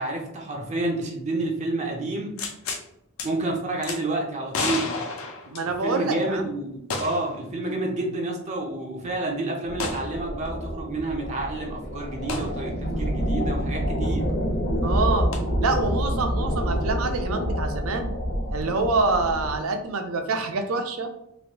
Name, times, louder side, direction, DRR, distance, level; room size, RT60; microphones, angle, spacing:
voice 1, 0.0-2.5 3.2-4.9 5.8-14.3, right 2 dB, 35° right, 0 dB, 0.5 m, -29 dB
sound 1, 2.4-2.8 3.2-3.3 3.8-4.0 4.5-6.0 6.9-7.4 7.7-7.8 9.8-10.1 12.3-12.5 15.3-15.4, left 3 dB, 70° left, 0.6 m, -30 dB
voice 2, 5.5-6.4 14.8-15.3 15.6-18.1 18.5-21.1, right 3 dB, 85° right, 7 dB, 0.5 m, -26 dB
sound 2, 9.7-19.6, equal, 55° left, 1.0 m, -27 dB
3.1 x 2.5 x 2.8 m, 0.81 s
head